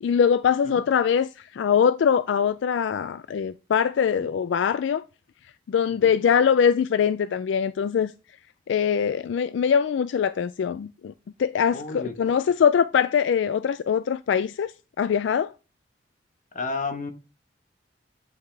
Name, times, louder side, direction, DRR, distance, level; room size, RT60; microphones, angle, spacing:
voice 1, 0.0-5.0 5.7-8.1 8.7-11.1 11.4-14.7 15.0-15.5, left 7 dB, 80° left, 0.3 m, -22 dB
voice 2, 11.7-12.1 16.5-17.1, left 3 dB, 45° left, 1.2 m, -31 dB
9.3 x 5.7 x 3.3 m
head